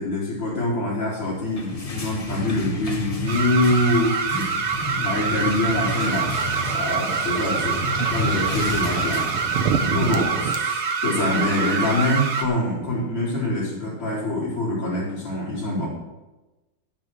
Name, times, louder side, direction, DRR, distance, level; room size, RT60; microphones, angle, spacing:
voice 1, 0.0-7.8 8.1-9.3 9.9-15.9, left 1 dB, 75° left, -6 dB, 5.3 m, -25 dB
sound 1, 1.3-10.0, left 2 dB, 45° left, 0.4 m, -31 dB
sound 2, 3.3-12.4, right 5 dB, 55° right, 1.5 m, -26 dB
sound 3, 5.9-10.6, right 6 dB, 85° right, 1.8 m, -30 dB
22.0 x 9.0 x 3.2 m, 1.1 s
omnidirectional pair, 2.4 m